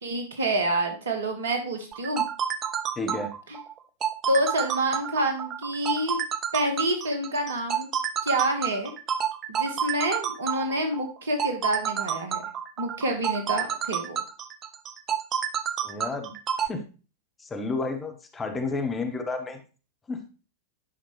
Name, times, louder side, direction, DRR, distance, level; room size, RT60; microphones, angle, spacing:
voice 1, 0.0-2.2 4.3-6.2 6.5-7.9 8.2-8.9 9.5-12.4 12.8-14.2, right 1 dB, 65° right, 5 dB, 1.5 m, -27 dB
sound 1, 1.9-16.7, right 8 dB, 30° right, 0.6 m, -29 dB
voice 2, 3.0-3.3 15.8-16.3 16.6-16.8 17.4-19.6 20.1-20.3, left 3 dB, 15° left, 5 dB, 1.1 m, -31 dB
9.9 x 5.7 x 3.2 m, 0.35 s
figure-of-eight pair, 90°, 0 cm